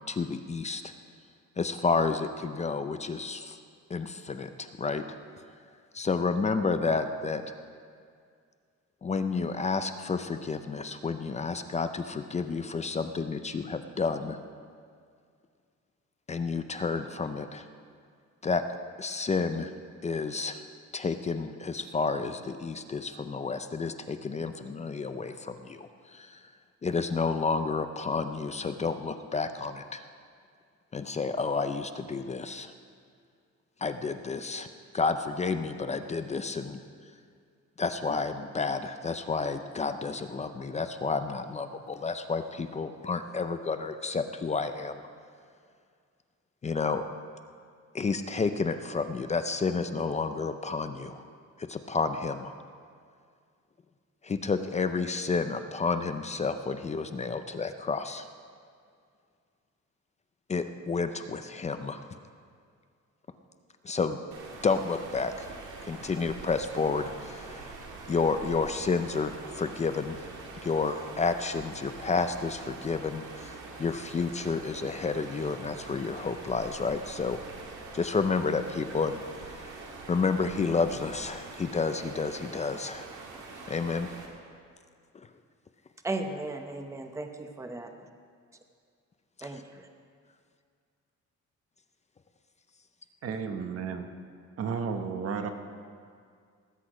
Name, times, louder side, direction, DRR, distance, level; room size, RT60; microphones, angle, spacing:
voice 1, 0.1-0.8 1.6-3.6 3.9-5.0 5.9-7.4 9.0-14.4 16.3-17.7 18.4-18.6 19.0-19.7 20.0-20.6 20.9-26.4 26.8-30.0 30.9-32.7 33.8-34.7 34.9-36.8 37.8-45.0 46.6-47.0 47.9-51.3 51.6-52.5 54.2-58.3 60.5-62.0 63.8-64.2 64.6-65.5 65.8-67.8 68.1-70.2 70.6-77.4 77.9-79.8 80.1-83.1 83.7-84.1 85.1-85.3 89.4-89.5, left 4 dB, 25° left, 9 dB, 0.4 m, -30 dB
sound 1, 64.3-84.3, right 3 dB, 80° right, 2.1 m, -44 dB
voice 2, 86.0-88.1 89.4-89.9, right 2 dB, 10° right, 5 dB, 0.8 m, -36 dB
voice 3, 93.2-94.1 94.6-95.5, right 6 dB, 50° right, 6 dB, 1.1 m, -32 dB
19.0 x 8.4 x 4.9 m, 2.2 s
cardioid pair, 150°, 30 cm